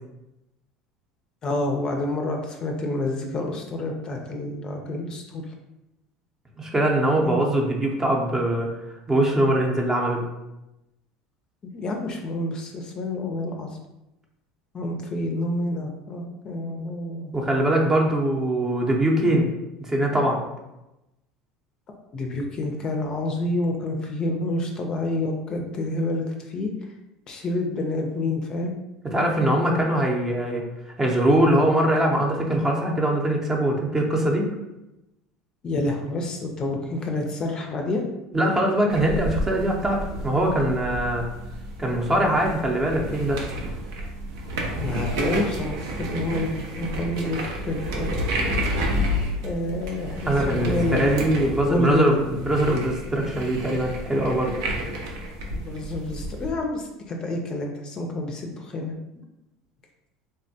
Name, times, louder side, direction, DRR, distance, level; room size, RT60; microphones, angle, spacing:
voice 1, 1.4-5.4 7.2-7.4 11.6-13.7 14.7-17.3 22.1-26.7 27.3-28.8 35.6-38.1 44.8-47.4 47.6-48.1 49.4-51.2 51.6-52.2 55.6-59.0, left 2 dB, 35° left, 2 dB, 0.5 m, -28 dB
voice 2, 6.6-8.7 9.1-10.3 17.3-19.5 19.9-20.4 29.1-30.6 31.0-34.4 38.3-41.2 41.8-43.4 50.3-54.5, right 1 dB, 20° right, 0 dB, 0.6 m, -22 dB
sound 1, 38.9-56.5, equal, 80° right, 0.5 m, -30 dB
3.4 x 2.1 x 2.7 m, 0.94 s
hypercardioid pair, 90°, 2 cm